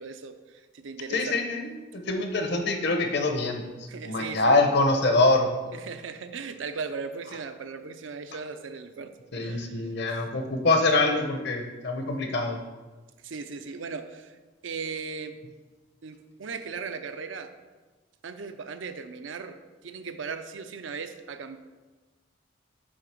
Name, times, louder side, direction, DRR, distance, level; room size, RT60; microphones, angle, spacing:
voice 1, 0.0-1.7 3.9-4.6 5.7-10.2 13.2-14.4 14.6-15.4 16.0-17.5 18.2-21.6, right 5 dB, 80° right, 9 dB, 0.6 m, -38 dB
voice 2, 1.1-3.6 4.0-5.5 9.3-12.6, left 2 dB, 60° left, 5 dB, 0.9 m, -24 dB
6.4 x 4.9 x 6.0 m, 1.3 s
head